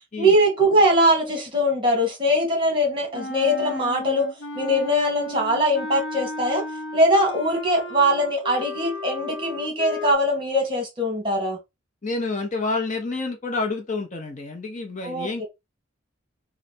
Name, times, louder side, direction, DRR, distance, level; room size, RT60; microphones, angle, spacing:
voice 1, 0.2-4.3 4.5-6.6 6.9-11.6 15.0-15.4, equal, 25° right, 1.6 m, -21 dB
Wind instrument woodwind instrument, 3.1-10.1, left 2 dB, 70° left, 0.6 m, -34 dB
voice 2, 12.0-15.4, left 3 dB, 40° left, 0.7 m, -28 dB
3.2 x 2.6 x 4.2 m
head